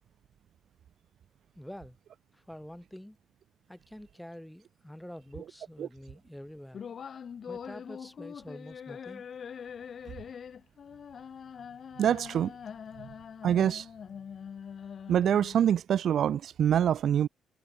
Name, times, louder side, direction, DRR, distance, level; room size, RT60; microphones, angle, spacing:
voice 1, 1.5-2.0 2.5-3.2 3.7-6.8 7.5-9.2, equal, 5° left, 4.6 m, -46 dB
sound 1, 6.7-15.7, left 7 dB, 50° left, 4.5 m, -43 dB
voice 2, 12.0-12.5 13.4-13.9 15.1-17.3, right 9 dB, 55° right, 0.4 m, -25 dB
figure-of-eight pair, 40°, 0 cm